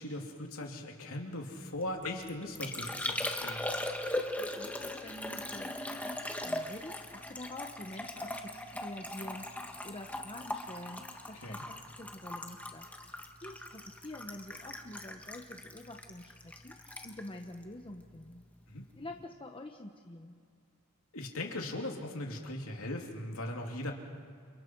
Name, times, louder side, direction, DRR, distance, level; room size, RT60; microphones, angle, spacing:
voice 1, 0.0-3.7 11.4-11.6 18.7-18.9 21.1-23.9, left 1 dB, 70° left, 1 dB, 3.1 m, -39 dB
Liquid, 1.8-18.4 18.7-19.2, left 1 dB, 5° left, 1.5 m, -40 dB
voice 2, 4.3-5.8 6.4-18.4 18.9-20.3, left 1 dB, 25° left, 3 dB, 1.1 m, -47 dB
29.5 x 29.0 x 4.7 m, 2.3 s
head